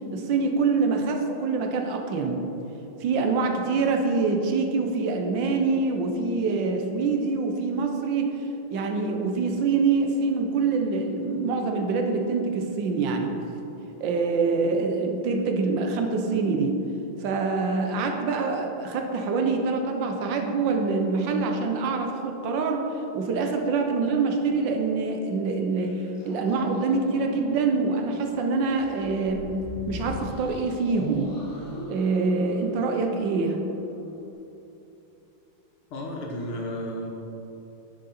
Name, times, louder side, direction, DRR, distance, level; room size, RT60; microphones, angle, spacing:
voice 1, 0.1-2.5 3.0-8.4 8.7-13.3 14.0-16.8 17.2-22.9 23.1-26.0 26.2-29.5 29.9-31.4 31.9-33.6, right 4 dB, 65° right, 3 dB, 1.4 m, -25 dB
sound 1, 25.8-34.3, left 1 dB, 10° left, 1.5 m, -42 dB
voice 2, 35.9-37.1, equal, 85° left, -1 dB, 2.2 m, -33 dB
10.0 x 6.6 x 4.3 m, 2.9 s
omnidirectional pair, 2.3 m